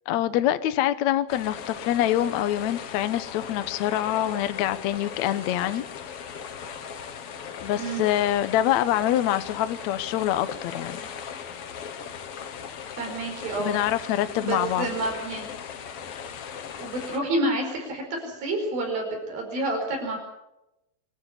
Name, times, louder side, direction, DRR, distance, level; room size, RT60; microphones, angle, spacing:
voice 1, 0.1-5.8 7.6-11.0 13.6-14.9, left 12 dB, 70° left, 12 dB, 1.9 m, -25 dB
sound 1, 1.3-17.2, left 7 dB, 55° left, 1.9 m, -38 dB
voice 2, 13.0-13.7 14.4-15.5 16.8-20.2, right 2 dB, 80° right, 1 dB, 6.6 m, -29 dB
26.0 x 12.5 x 9.9 m, 0.91 s
omnidirectional pair, 4.2 m